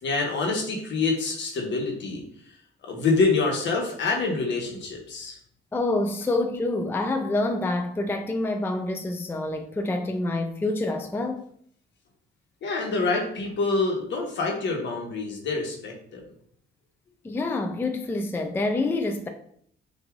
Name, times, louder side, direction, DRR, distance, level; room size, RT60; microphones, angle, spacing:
voice 1, 0.0-2.2 2.8-5.4 12.6-16.2, left 3 dB, 65° left, 1.2 m, -26 dB
voice 2, 5.7-11.4 17.2-19.3, left 2 dB, 10° left, 0.4 m, -27 dB
5.9 x 2.6 x 2.4 m
cardioid pair, 90°, 20 cm